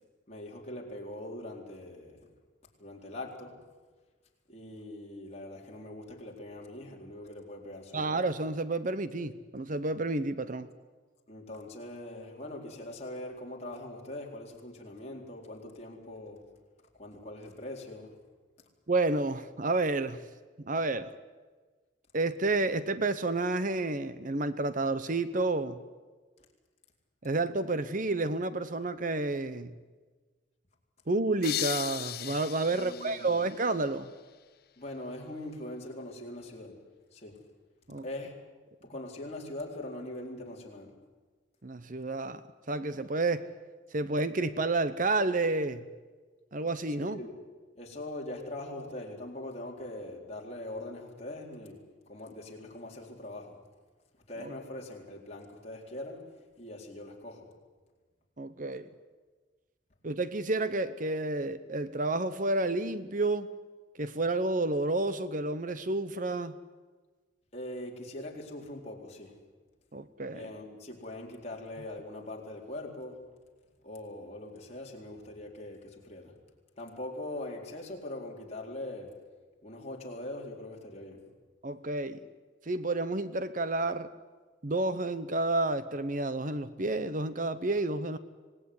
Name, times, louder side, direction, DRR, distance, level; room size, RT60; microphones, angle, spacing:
voice 1, 0.3-2.3 2.8-3.6 4.5-8.2 11.3-16.5 17.0-18.2 32.7-33.4 34.8-36.8 37.1-37.4 37.9-38.3 38.8-41.0 47.0-47.4 47.7-53.6 54.3-56.3 56.6-57.5 67.5-69.4 70.3-73.2 73.8-76.4 76.8-79.2 79.6-81.3, left 1 dB, 35° left, -1 dB, 4.2 m, -42 dB
voice 2, 7.9-10.7 18.9-20.2 20.6-21.1 22.1-25.8 27.2-29.7 31.1-34.1 37.9-38.0 41.6-43.5 43.9-45.8 46.5-47.2 54.4-54.5 58.4-58.9 60.0-63.5 64.0-66.6 69.9-70.5 81.6-82.2 82.7-84.1 84.6-88.2, right 2 dB, 45° right, 13 dB, 0.9 m, -30 dB
sound 1, 31.4-34.2, left 12 dB, 55° left, 0.9 m, -37 dB
25.5 x 19.0 x 9.7 m, 1.4 s
head